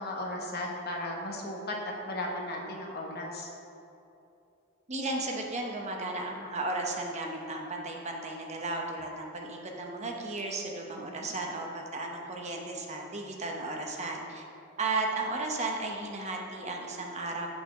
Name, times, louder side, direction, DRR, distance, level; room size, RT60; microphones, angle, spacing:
voice 1, 0.0-3.5 11.0-11.3, left 1 dB, 50° left, 0 dB, 1.1 m, -36 dB
voice 2, 4.9-14.4 14.8-17.5, right 2 dB, 35° right, 1 dB, 0.8 m, -34 dB
8.4 x 4.1 x 6.0 m, 2.7 s
head